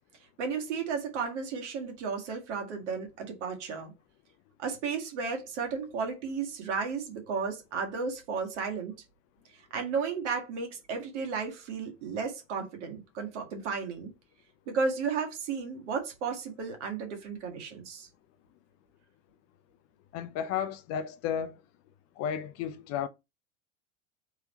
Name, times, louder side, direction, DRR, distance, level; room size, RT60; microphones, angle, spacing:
voice 1, 0.4-3.9 4.6-8.9 9.7-14.1 14.7-18.1, right 5 dB, 60° right, 1.8 m, -33 dB
voice 2, 20.1-21.6 22.2-23.1, left 8 dB, 40° left, 0.6 m, -33 dB
3.6 x 3.5 x 4.2 m
figure-of-eight pair, 80°, 39 cm